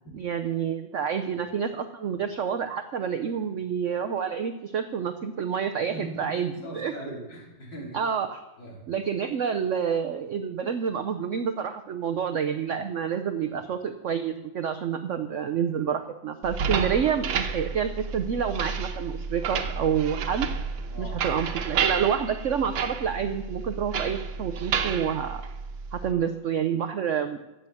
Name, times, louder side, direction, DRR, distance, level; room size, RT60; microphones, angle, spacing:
voice 1, 0.1-6.9 7.9-8.4 8.9-20.5 21.0-25.4 25.9-27.4, right 7 dB, 65° right, 7 dB, 0.7 m, -28 dB
voice 2, 5.9-6.3 6.6-8.0 8.6-8.8 20.9-21.2, right 1 dB, 70° left, -3 dB, 4.4 m, -39 dB
sound 1, 16.4-26.1, right 6 dB, 90° right, 1.7 m, -31 dB
15.5 x 7.7 x 7.1 m, 1.0 s
omnidirectional pair, 2.0 m